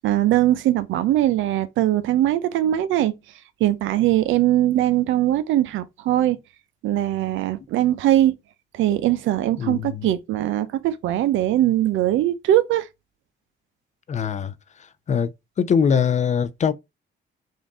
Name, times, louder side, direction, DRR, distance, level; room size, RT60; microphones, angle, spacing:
voice 1, 0.0-3.1 3.6-6.4 6.8-8.3 8.7-12.9, right 13 dB, 80° right, 0.5 m, -21 dB
voice 2, 9.6-10.1 14.1-14.5 15.1-15.3 15.6-16.7, left 7 dB, 35° left, 0.4 m, -22 dB
3.7 x 2.6 x 3.6 m
cardioid pair, 90°, 20 cm